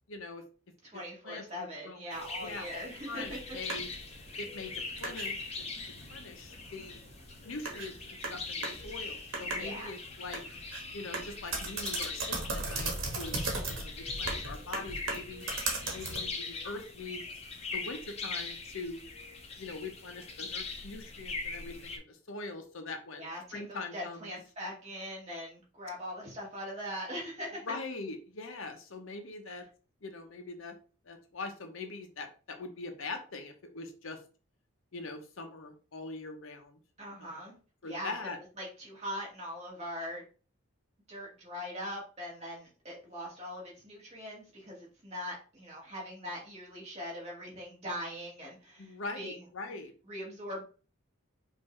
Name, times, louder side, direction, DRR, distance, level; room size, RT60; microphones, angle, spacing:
voice 1, 0.1-0.4 0.9-3.9 4.4-5.7 6.1-7.0 7.4-10.4 10.9-13.4 13.7-15.5 15.9-17.3 17.7-19.1 19.6-24.4 27.6-29.6 30.0-30.8 31.0-34.2 34.9-36.8 37.2-37.4 37.8-38.4 48.8-49.9, left 3 dB, 75° left, 5 dB, 0.8 m, -42 dB
voice 2, 0.8-3.6 9.6-9.9 23.2-27.6 29.5-29.6 37.0-37.6 37.8-38.1 38.6-40.2 41.1-49.3 50.1-50.6, equal, 30° right, -3 dB, 1.9 m, -41 dB
sound 1, 2.1-22.0, left 4 dB, 30° left, 0.8 m, -41 dB
sound 2, 3.2-16.4, right 3 dB, 70° right, 1.4 m, -39 dB
5.4 x 2.7 x 3.1 m, 0.36 s
head